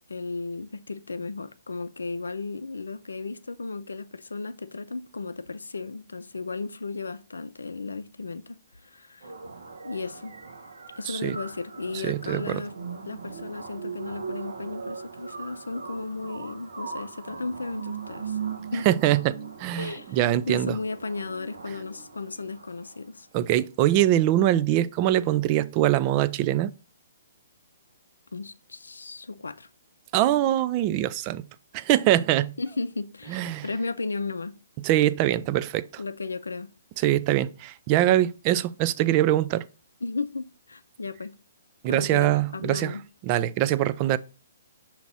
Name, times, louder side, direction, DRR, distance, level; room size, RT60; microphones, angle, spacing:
voice 1, 0.0-9.3 9.8-10.3 11.0-12.7 13.0-18.4 18.7-18.9 19.8-20.2 20.5-23.3 28.3-29.7 32.6-34.5 36.0-36.7 40.0-41.3 41.9-43.0, left 3 dB, 90° left, 0.5 m, -35 dB
sound 1, 9.2-23.2, right 5 dB, 85° right, 0.9 m, -39 dB
voice 2, 11.1-11.4 11.9-12.6 18.9-20.8 23.3-26.7 30.1-31.4 31.7-32.5 33.3-33.7 34.8-35.9 37.0-39.7 41.8-43.0 43.2-44.2, right 13 dB, 35° right, 0.4 m, -23 dB
6.0 x 2.9 x 5.4 m
hypercardioid pair, 135°, 0 cm